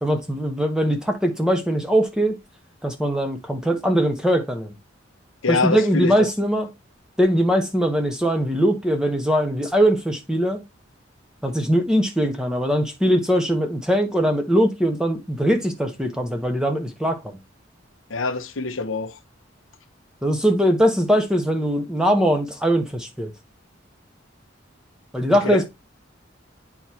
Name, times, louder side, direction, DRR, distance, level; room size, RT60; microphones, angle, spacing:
voice 1, 0.0-2.4 2.8-4.7 5.5-6.7 7.2-10.6 11.4-17.4 20.2-23.3 25.1-25.7, equal, 5° right, 1.2 m, -21 dB
voice 2, 5.4-6.3 18.1-19.2 25.4-25.6, left 3 dB, 85° left, 1.0 m, -25 dB
9.0 x 4.5 x 2.8 m
head